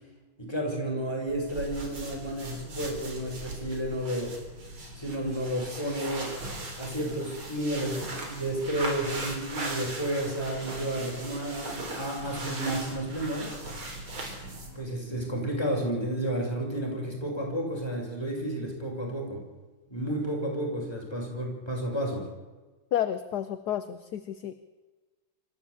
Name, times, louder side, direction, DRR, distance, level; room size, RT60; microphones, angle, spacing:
voice 1, 0.4-4.3 4.9-6.3 6.8-13.5 14.7-19.4 19.9-22.2, right 1 dB, 10° left, -1 dB, 6.7 m, -31 dB
sound 1, 1.3-14.8, right 2 dB, 85° right, 4.7 m, -39 dB
voice 2, 22.9-24.5, left 10 dB, 60° left, 11 dB, 1.3 m, -31 dB
25.0 x 14.5 x 8.6 m, 1.2 s
omnidirectional pair, 2.2 m